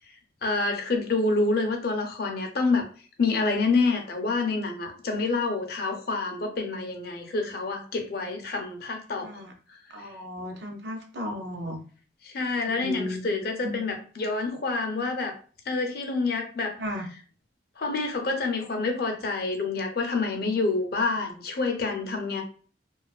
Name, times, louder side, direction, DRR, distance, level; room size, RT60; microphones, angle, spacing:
voice 1, 0.4-2.9 3.2-9.4 10.0-10.1 12.2-15.4 15.7-16.7 17.8-22.4, left 3 dB, 55° left, 4 dB, 0.5 m, -27 dB
voice 2, 9.2-9.5 9.9-11.8 12.7-13.3 13.6-13.8 16.8-17.1, left 1 dB, 60° right, 4 dB, 0.5 m, -35 dB
2.4 x 2.3 x 2.3 m, 0.40 s
head